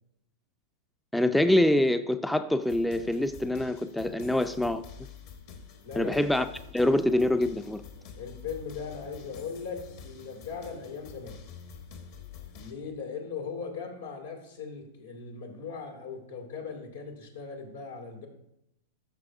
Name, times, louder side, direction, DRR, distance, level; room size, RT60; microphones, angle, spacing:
voice 1, 1.1-4.8 6.0-6.5 6.7-7.8, left 1 dB, 5° left, 11 dB, 0.4 m, -25 dB
sound 1, 2.6-12.7, left 6 dB, 55° left, 1.3 m, -47 dB
voice 2, 5.8-6.2 8.2-11.4 12.5-18.3, left 5 dB, 80° left, 2 dB, 2.2 m, -39 dB
12.5 x 6.3 x 2.7 m, 0.81 s
hypercardioid pair, 105°, 0 cm